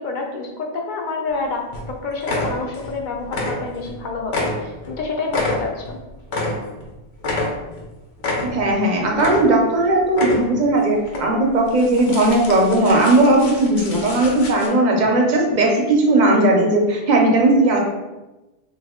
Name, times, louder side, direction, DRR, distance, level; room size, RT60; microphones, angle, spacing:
voice 1, 0.0-6.0, left 3 dB, 55° left, 1 dB, 0.6 m, -28 dB
sound 1, 1.3-1.4 1.7-1.9 2.2-3.0 3.2-4.0 4.3-6.9 7.2-7.9 8.2-8.8 9.1-9.8 10.1-10.7 11.1-11.2 11.7-14.7, left 2 dB, 90° left, 0.9 m, -27 dB
voice 2, 8.5-17.8, right 2 dB, 50° right, 0 dB, 0.7 m, -17 dB
2.8 x 2.3 x 3.5 m, 1.1 s
omnidirectional pair, 1.1 m